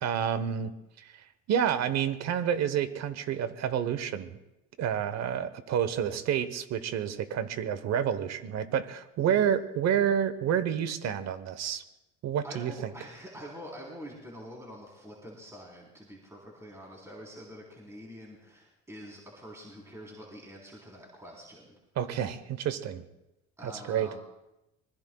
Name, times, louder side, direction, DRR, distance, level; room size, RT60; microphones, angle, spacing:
voice 1, 0.0-1.1 1.5-4.4 4.8-11.8 12.2-12.9 22.0-23.0 23.6-24.1, right 9 dB, 60° right, 12 dB, 1.1 m, -29 dB
voice 2, 9.2-9.5 12.4-21.8 23.6-24.2, equal, 10° right, -3 dB, 3.8 m, -46 dB
24.5 x 20.5 x 2.3 m, 0.95 s
cardioid pair, 100°, 30 cm